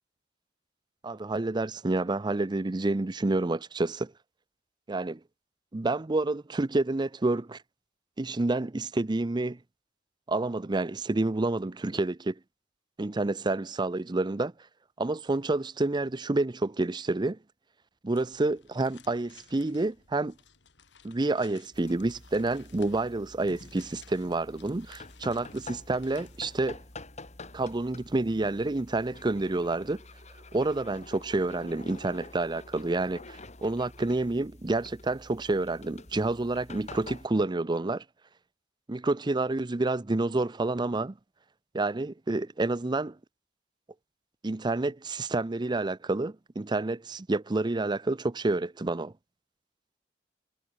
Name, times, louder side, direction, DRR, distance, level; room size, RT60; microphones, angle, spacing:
voice 1, 1.0-4.1 4.9-5.2 5.7-7.6 8.2-9.6 10.3-12.4 13.0-14.5 15.0-17.4 18.0-20.3 21.0-26.8 27.5-30.0 30.5-38.0 38.9-41.2 41.7-43.2 44.4-49.1, right 2 dB, 25° right, 0.5 m, -29 dB
sound 1, 18.1-27.8, left 7 dB, 70° left, 3.3 m, -58 dB
sound 2, 21.7-37.3, left 2 dB, 40° left, 3.5 m, -48 dB
head